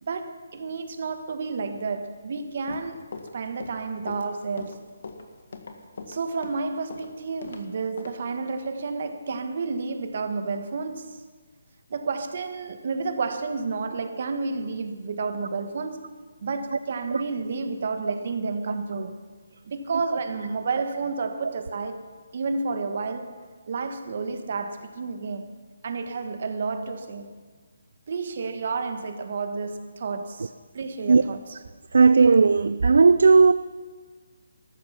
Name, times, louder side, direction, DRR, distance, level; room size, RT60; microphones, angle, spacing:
voice 1, 0.0-3.0 3.3-4.8 6.1-11.2 11.9-16.1 16.4-19.2 19.6-22.1 22.3-23.3 23.7-25.6 25.8-27.3 28.1-31.4, right 4 dB, 50° right, 1.4 m, -31 dB
Run, 2.5-7.6 8.0-8.1, left 4 dB, 65° left, 1.7 m, -40 dB
voice 2, 31.9-33.5, right 4 dB, 70° right, 0.4 m, -15 dB
14.5 x 13.0 x 5.7 m
hypercardioid pair, 160°, 0 cm